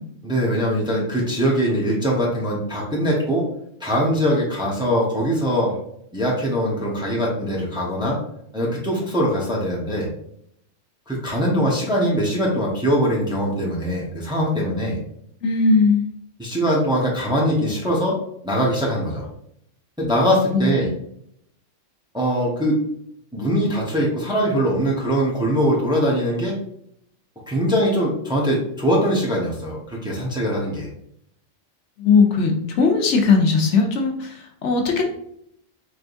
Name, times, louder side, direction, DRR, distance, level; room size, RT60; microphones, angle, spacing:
voice 1, 0.2-3.4 3.8-5.7 6.1-8.2 8.5-10.1 11.1-15.0 16.4-18.2 18.4-19.3 20.0-20.9 22.1-22.8 23.3-26.6 27.5-30.9, equal, 5° right, -4 dB, 0.9 m, -22 dB
voice 2, 15.4-16.0 20.5-20.9 32.0-35.0, left 4 dB, 70° left, 2 dB, 1.0 m, -18 dB
4.3 x 3.4 x 2.5 m, 0.71 s
omnidirectional pair, 1.3 m